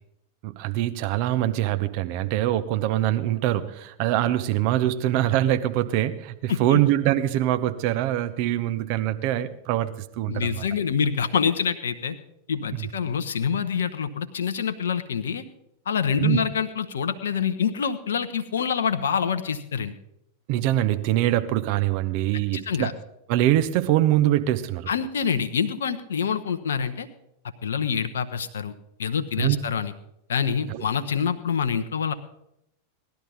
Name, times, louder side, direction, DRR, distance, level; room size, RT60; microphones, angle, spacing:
voice 1, 0.4-10.6 12.7-12.9 16.2-16.4 20.5-22.9 23.3-24.9 29.4-29.6 30.7-30.8, right 13 dB, 45° right, 12 dB, 0.8 m, -24 dB
voice 2, 6.5-6.8 10.3-12.1 12.5-15.4 15.9-20.0 22.3-22.9 24.9-27.1 27.6-28.7 29.0-29.9 30.3-32.1, left 7 dB, 65° left, 10 dB, 0.8 m, -26 dB
18.5 x 11.5 x 4.0 m, 0.82 s
figure-of-eight pair, 90°, 0 cm